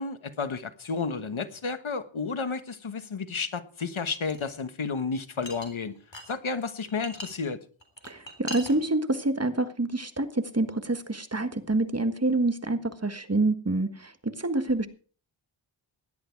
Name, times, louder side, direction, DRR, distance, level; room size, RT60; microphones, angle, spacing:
voice 1, 0.0-5.9 6.3-7.6, left 4 dB, 90° left, 1.4 m, -32 dB
sound 1, 4.3-4.5 5.4-6.3 6.6-7.3 7.8-8.8, equal, 65° left, 3.7 m, -39 dB
voice 2, 8.1-14.9, right 2 dB, 30° right, 1.6 m, -27 dB
17.0 x 11.5 x 4.6 m
wide cardioid pair, 60°, 47 cm